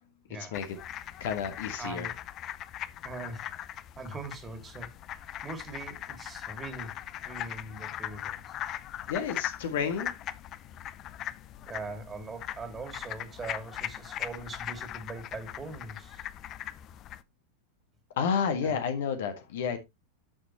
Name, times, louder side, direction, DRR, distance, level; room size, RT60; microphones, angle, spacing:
sound 1, 0.5-17.2, left 12 dB, 35° left, 0.6 m, -40 dB
voice 1, 1.2-2.1 9.1-10.1 18.2-19.8, left 6 dB, 55° left, 1.6 m, -30 dB
voice 2, 1.8-2.1 3.0-5.0 5.2-8.4 11.7-16.2 18.6-18.8, right 3 dB, 20° right, 2.3 m, -42 dB
11.0 x 6.4 x 2.9 m
figure-of-eight pair, 90°, 0 cm